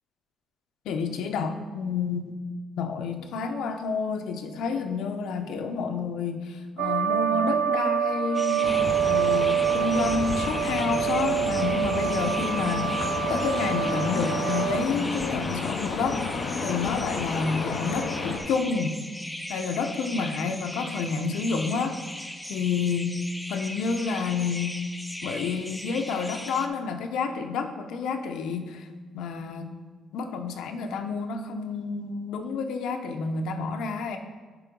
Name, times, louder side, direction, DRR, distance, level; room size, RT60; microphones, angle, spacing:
voice 1, 0.9-2.3 2.8-8.7 9.0-16.2 16.6-19.0 19.5-22.0 22.5-23.2 23.5-24.8 25.2-28.8 29.1-29.8 30.1-34.2, left 5 dB, 80° left, 5 dB, 0.8 m, -29 dB
sound 1, 6.8-14.9, right 8 dB, 70° right, 0.5 m, -26 dB
sound 2, 8.3-26.7, left 1 dB, 5° left, 0.4 m, -38 dB
sound 3, 8.6-18.4, left 4 dB, 45° left, 0.8 m, -32 dB
9.7 x 3.8 x 5.2 m, 1.4 s
cardioid pair, 175°, 0 cm